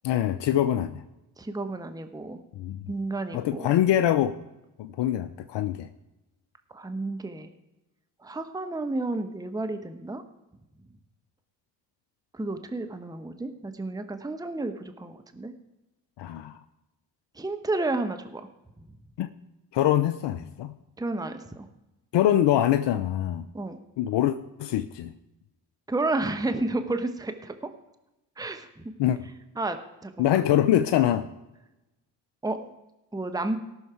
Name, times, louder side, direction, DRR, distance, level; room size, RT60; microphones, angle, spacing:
voice 1, 0.0-1.0 2.6-2.8 3.3-4.3 4.8-5.9 16.2-16.6 19.2-19.3 19.7-20.7 22.1-23.5 24.0-25.1 29.0-29.2 30.2-31.3, left 11 dB, 60° left, 11 dB, 0.7 m, -24 dB
voice 2, 1.4-2.4 2.8-3.7 6.7-7.5 8.2-10.2 12.3-15.5 17.4-18.4 21.0-21.7 23.5-23.8 25.9-27.6 28.4-28.8 29.6-30.4 32.4-32.7 33.1-33.6, right 2 dB, 10° right, 8 dB, 1.0 m, -31 dB
17.5 x 6.4 x 4.5 m, 0.96 s
hypercardioid pair, 50°, 49 cm